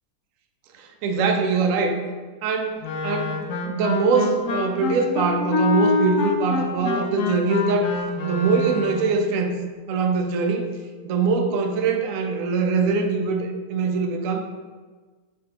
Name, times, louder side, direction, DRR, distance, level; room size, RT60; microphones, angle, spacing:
voice 1, 0.8-2.0 2.4-7.9 8.2-9.6 9.9-10.7 11.0-14.5, right 4 dB, 70° right, 4 dB, 0.9 m, -23 dB
Wind instrument woodwind instrument, 2.8-9.2, left 3 dB, 80° left, 1.1 m, -26 dB
5.2 x 3.6 x 2.8 m, 1.4 s
omnidirectional pair, 1.6 m